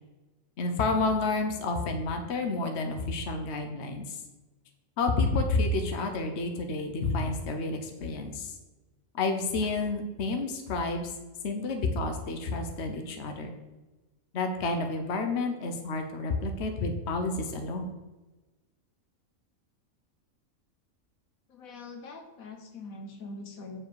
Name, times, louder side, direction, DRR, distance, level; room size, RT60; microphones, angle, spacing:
voice 1, 0.6-4.2 5.0-8.5 9.1-11.1 11.4-13.5 14.3-17.9, left 3 dB, 55° left, 5 dB, 1.1 m, -30 dB
voice 2, 21.5-23.8, left 3 dB, 80° left, 4 dB, 1.5 m, -43 dB
7.3 x 7.1 x 4.8 m, 1.1 s
omnidirectional pair, 1.4 m